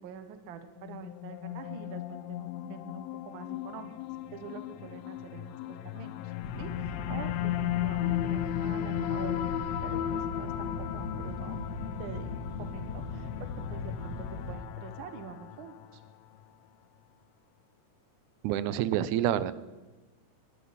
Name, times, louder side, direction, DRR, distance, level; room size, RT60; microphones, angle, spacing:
voice 1, 0.0-3.9 4.3-9.3 9.8-11.6 12.0-12.3 12.6-16.0, right 7 dB, 60° right, 9 dB, 1.4 m, -46 dB
sound 1, 0.8-16.1, left 12 dB, 80° left, 1.5 m, -36 dB
sound 2, 6.4-14.6, left 3 dB, 50° left, 1.2 m, -38 dB
voice 2, 18.4-19.5, right 11 dB, 90° right, 16 dB, 2.1 m, -27 dB
20.0 x 11.0 x 4.1 m, 1.2 s
omnidirectional pair, 3.4 m